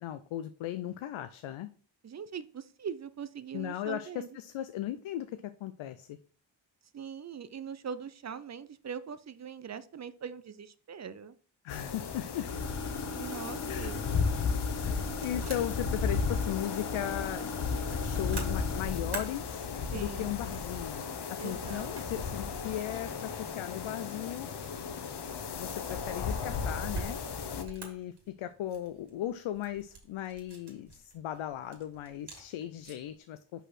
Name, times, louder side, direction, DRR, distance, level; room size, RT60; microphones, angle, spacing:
voice 1, 0.0-1.7 3.5-6.2 11.6-12.5 13.7-13.9 14.8-17.5 18.0-19.7 19.9-24.5 25.5-27.2 27.5-33.7, left 12 dB, 80° left, 10 dB, 0.6 m, -37 dB
voice 2, 2.0-4.3 6.9-11.3 13.1-14.0 19.9-20.4 21.4-21.9, right 7 dB, 35° right, 14 dB, 0.5 m, -41 dB
sound 1, 11.7-27.6, left 5 dB, 55° left, 1.0 m, -34 dB
sound 2, 12.5-18.8, left 2 dB, 35° left, 0.8 m, -41 dB
sound 3, 14.3-33.2, right 3 dB, 55° right, 2.1 m, -49 dB
5.5 x 4.0 x 5.9 m, 0.42 s
cardioid pair, 100°, 47 cm